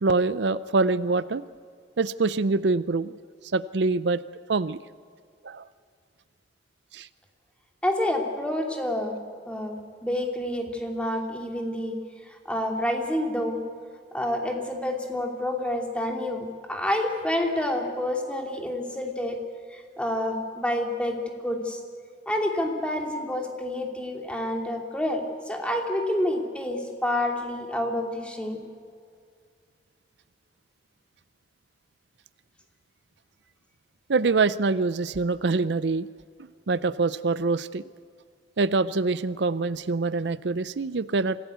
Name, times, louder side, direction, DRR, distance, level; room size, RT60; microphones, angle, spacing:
voice 1, 0.0-1.4 2.0-3.2 3.5-4.2 4.5-4.8 5.4-5.6 6.9-7.1 34.1-36.1 36.7-37.8 38.6-41.4, right 3 dB, 70° right, 16 dB, 0.6 m, -25 dB
voice 2, 7.8-9.2 9.5-11.9 12.3-13.6 14.1-19.4 19.7-21.2 21.4-21.8 22.3-28.6, left 1 dB, 5° left, 2 dB, 2.7 m, -28 dB
25.0 x 16.5 x 8.2 m, 2.1 s
head